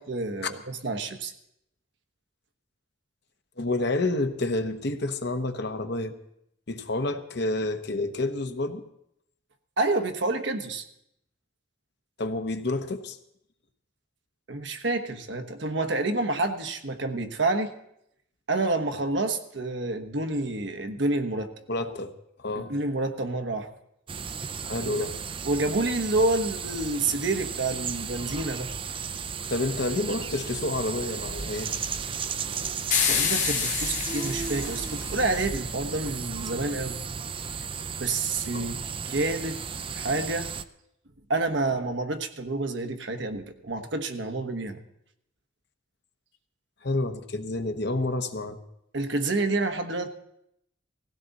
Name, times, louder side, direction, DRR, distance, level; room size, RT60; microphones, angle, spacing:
voice 1, 0.0-1.3 9.8-10.8 14.5-17.7 18.5-21.5 22.5-23.7 24.8-25.0 25.4-28.7 33.1-37.0 38.0-38.8 39.1-39.6 39.9-40.5 41.3-44.8 48.9-50.1, right 2 dB, 65° right, 7 dB, 1.2 m, -28 dB
voice 2, 3.6-6.1 6.7-8.8 12.2-13.2 21.7-22.1 22.4-22.7 24.6-25.2 29.5-31.7 38.5-38.7 46.8-48.6, left 2 dB, 55° left, 7 dB, 1.0 m, -29 dB
sound 1, 24.1-40.6, right 6 dB, 25° right, 0.5 m, -34 dB
sound 2, 32.9-35.3, left 7 dB, 40° left, 1.9 m, -28 dB
18.0 x 16.0 x 4.1 m, 0.77 s
head